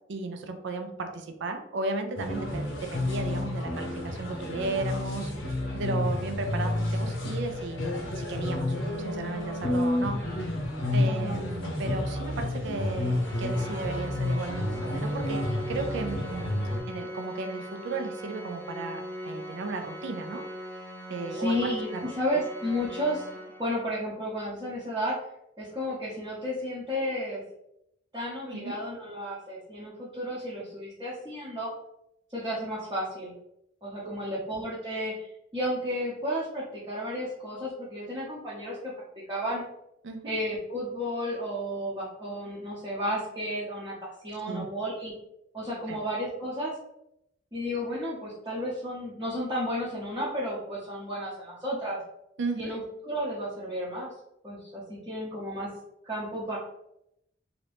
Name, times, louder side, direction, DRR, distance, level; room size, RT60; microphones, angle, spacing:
voice 1, 0.1-5.3 5.7-8.7 9.0-10.2 10.9-16.5 16.9-20.4 21.1-22.0 28.5-28.8 34.0-34.1 40.0-40.3 44.4-44.7 45.9-46.0 52.4-52.8, right 3 dB, 65° right, 5 dB, 0.4 m, -35 dB
sound 1, 2.2-16.8, left 1 dB, 80° left, 0.7 m, -30 dB
voice 2, 11.1-11.4 21.3-23.3 23.6-25.2 25.6-27.4 28.1-31.7 32.3-33.3 33.8-38.9 39.3-39.6 40.2-45.1 45.5-46.7 47.5-52.0 52.6-54.1 54.4-55.7 56.0-56.6, equal, 20° right, -8 dB, 0.7 m, -32 dB
Organ, 13.2-24.0, equal, 10° left, 0.4 m, -40 dB
2.8 x 2.6 x 3.3 m, 0.80 s
head